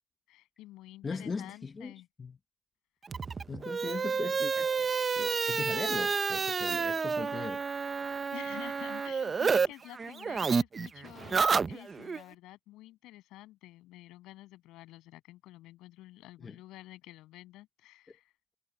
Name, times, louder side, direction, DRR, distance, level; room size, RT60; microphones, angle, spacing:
voice 1, 0.3-2.1 8.3-18.3, left 16 dB, 80° left, 7.5 m, -50 dB
voice 2, 1.0-1.9 2.2-2.4 3.5-4.9 5.1-7.6 16.4-16.6, left 4 dB, 25° left, 0.8 m, -39 dB
sound 1, 3.1-9.7 9.9-12.2, right 5 dB, 25° right, 0.6 m, -30 dB
cardioid pair, 150°, 0 cm